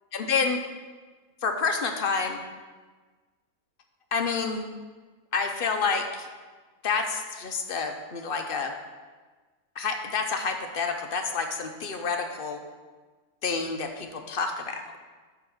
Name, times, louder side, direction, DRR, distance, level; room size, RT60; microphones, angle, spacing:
voice 1, 0.1-0.6 1.4-2.4 4.1-4.7 5.3-6.3 6.8-8.7 9.8-12.6 13.4-14.9, left 5 dB, 55° left, 5 dB, 0.6 m, -28 dB
8.1 x 3.8 x 6.3 m, 1.4 s
omnidirectional pair, 1.5 m